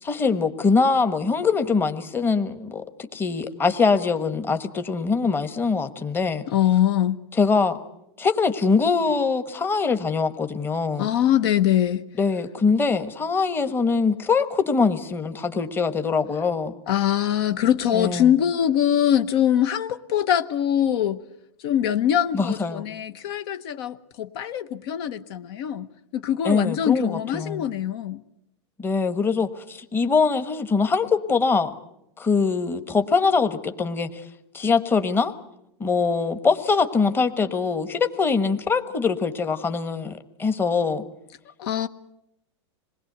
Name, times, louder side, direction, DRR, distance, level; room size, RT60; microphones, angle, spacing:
voice 1, 0.0-6.4 7.4-7.8 8.2-11.1 12.2-16.7 17.9-18.3 22.3-22.8 26.4-27.6 28.8-31.7 32.2-34.2 34.5-35.3 35.8-41.0, left 4 dB, 15° left, 1.3 m, -23 dB
voice 2, 6.5-7.2 11.0-12.0 16.9-21.2 21.6-25.9 26.1-28.2 41.6-41.9, left 10 dB, 55° left, 1.1 m, -23 dB
26.5 x 20.0 x 8.0 m
hypercardioid pair, 135°, 15 cm